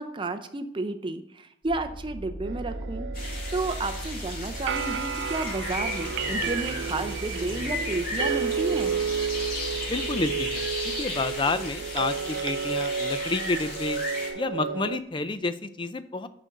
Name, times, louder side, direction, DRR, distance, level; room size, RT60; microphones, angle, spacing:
voice 1, 0.0-3.1 3.5-9.0, right 2 dB, 25° right, 8 dB, 0.5 m, -32 dB
sound 1, 1.6-14.3, equal, 70° left, 2.0 m, -40 dB
sound 2, 2.5-15.0, right 7 dB, 80° right, 0.4 m, -32 dB
sound 3, 3.1-14.3, left 2 dB, 50° left, 2.3 m, -35 dB
voice 2, 9.9-10.6 11.0-14.0 14.4-16.3, left 3 dB, 25° left, 12 dB, 0.4 m, -29 dB
6.2 x 5.1 x 6.6 m, 0.72 s
head